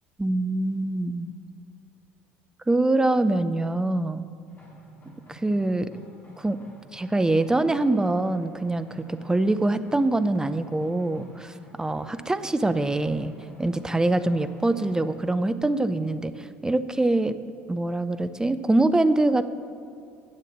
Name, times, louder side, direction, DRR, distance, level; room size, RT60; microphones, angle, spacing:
voice 1, 0.2-1.3 2.7-4.3 5.3-5.9 6.4-6.6 6.9-13.3 13.6-17.4 17.7-19.4, right 2 dB, 10° right, 12 dB, 0.6 m, -24 dB
sound 1, 4.5-15.3, equal, 30° left, 3.2 m, -49 dB
10.5 x 7.6 x 7.5 m, 2.4 s
figure-of-eight pair, 60°, 6 cm